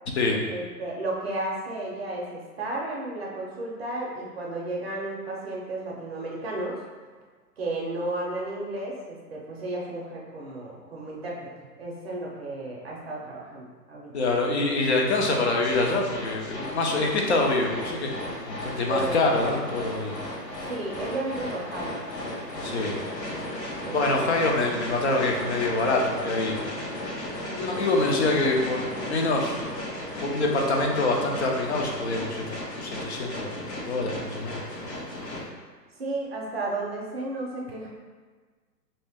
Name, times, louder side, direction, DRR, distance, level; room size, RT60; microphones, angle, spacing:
voice 1, 0.5-6.8 7.6-14.1 18.8-19.3 20.7-22.0 23.8-24.1 27.5-27.7 36.0-37.9, right 2 dB, 40° right, -3 dB, 0.6 m, -33 dB
voice 2, 14.1-18.2 18.5-20.1 22.6-23.0 23.9-26.6 27.5-29.6 30.2-33.5 33.9-34.6, left 2 dB, 45° left, 1 dB, 0.5 m, -25 dB
sound 1, 15.6-35.4, left 1 dB, 80° left, 1.2 m, -35 dB
3.1 x 2.7 x 3.4 m, 1.5 s
hypercardioid pair, 150°, 49 cm